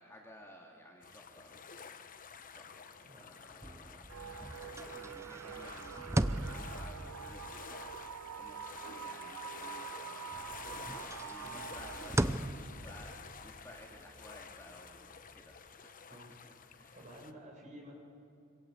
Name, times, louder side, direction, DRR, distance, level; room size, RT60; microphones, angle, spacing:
voice 1, 0.0-1.6 2.5-2.8 3.1-4.1 4.5-10.2 10.5-10.6 10.9-15.5 15.8-16.0 16.4-17.0, equal, 10° left, -1 dB, 2.4 m, -56 dB
sound 1, 1.0-17.3, left 6 dB, 40° left, 1.0 m, -50 dB
sound 2, 3.5-10.0 10.3-15.7, right 1 dB, 15° right, 0.6 m, -40 dB
sound 3, 4.1-12.1, right 8 dB, 85° right, 0.5 m, -46 dB
voice 2, 16.9-17.9, right 1 dB, 35° right, 0 dB, 6.6 m, -52 dB
26.0 x 25.0 x 8.0 m, 2.5 s
head